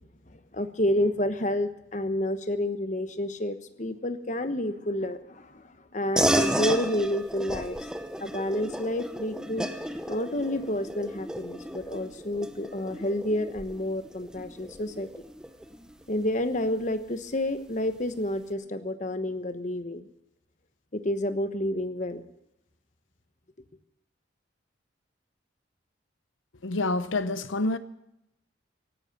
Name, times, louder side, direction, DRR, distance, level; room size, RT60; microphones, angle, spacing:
voice 1, 0.3-7.8 8.2-9.7 10.1-15.1 16.1-20.0 20.9-22.2, left 1 dB, 40° left, 9 dB, 1.1 m, -29 dB
sound 1, 6.2-16.0, equal, 5° right, 0.8 m, -32 dB
voice 2, 26.6-27.8, left 2 dB, 85° left, 13 dB, 0.8 m, -27 dB
17.5 x 11.0 x 6.8 m, 0.85 s
head